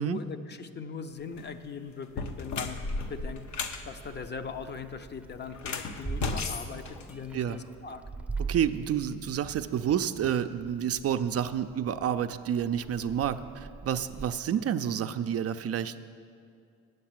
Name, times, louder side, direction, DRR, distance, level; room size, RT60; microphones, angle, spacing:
voice 1, 0.0-2.8 3.1-8.0, left 5 dB, 35° left, 8 dB, 0.6 m, -40 dB
sound 1, 1.2-1.5 2.0-3.8 5.5-7.6, left 4 dB, 70° left, 0.9 m, -34 dB
Meow, 3.0-14.3, right 4 dB, 5° right, 0.7 m, -42 dB
voice 2, 8.4-16.0, right 9 dB, 50° right, 9 dB, 0.5 m, -29 dB
9.1 x 8.0 x 7.4 m, 2.3 s
cardioid pair, 90°, 30 cm